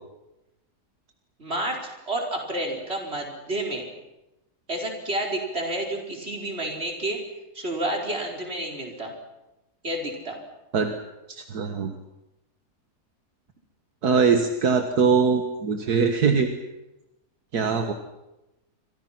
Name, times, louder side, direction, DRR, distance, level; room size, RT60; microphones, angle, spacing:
voice 1, 1.4-3.9 4.7-7.2 7.5-9.1 9.8-10.4, right 1 dB, 40° right, 1 dB, 5.2 m, -30 dB
voice 2, 11.3-12.0 14.0-16.5 17.5-17.9, right 5 dB, 70° right, 6 dB, 2.0 m, -22 dB
29.0 x 25.5 x 6.0 m, 0.96 s
omnidirectional pair, 1.7 m